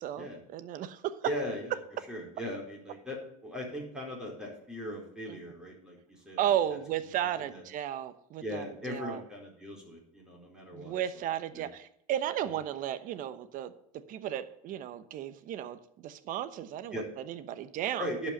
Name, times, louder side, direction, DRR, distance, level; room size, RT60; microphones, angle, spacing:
voice 1, 0.5-1.2 5.3-5.4 6.4-9.2 10.7-13.7 14.1-18.1, right 11 dB, 45° right, 13 dB, 1.0 m, -34 dB
voice 2, 1.2-1.8 2.1-6.4 7.4-7.6 8.4-10.9 11.5-11.7 16.9-17.1 18.0-18.3, equal, 5° right, -2 dB, 4.4 m, -39 dB
11.0 x 5.5 x 8.4 m, 0.71 s
supercardioid pair, 115°, 19 cm